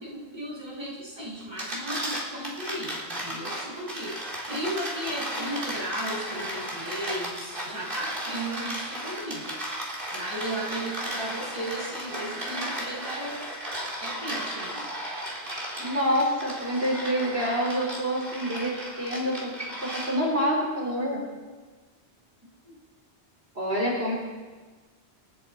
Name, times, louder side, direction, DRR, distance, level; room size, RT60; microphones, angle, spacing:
voice 1, 0.0-9.6 10.1-13.5 14.0-14.9, right 1 dB, 25° right, -7 dB, 6.8 m, -35 dB
sound 1, 1.4-20.4, right 1 dB, 50° right, 3.8 m, -35 dB
voice 2, 15.8-19.5 19.8-21.2 23.5-24.1, equal, 70° right, -4 dB, 4.5 m, -27 dB
28.5 x 10.0 x 4.6 m, 1.4 s
omnidirectional pair, 1.1 m